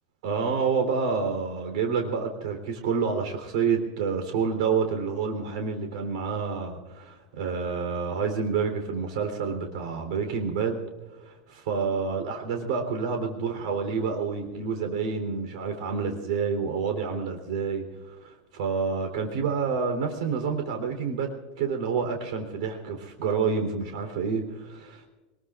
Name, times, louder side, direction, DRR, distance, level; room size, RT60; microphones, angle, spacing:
voice 1, 0.2-10.8 11.2-25.1, right 5 dB, 80° right, 5 dB, 3.6 m, -28 dB
26.5 x 21.0 x 2.5 m, 1.2 s
supercardioid pair, 155°, 4 cm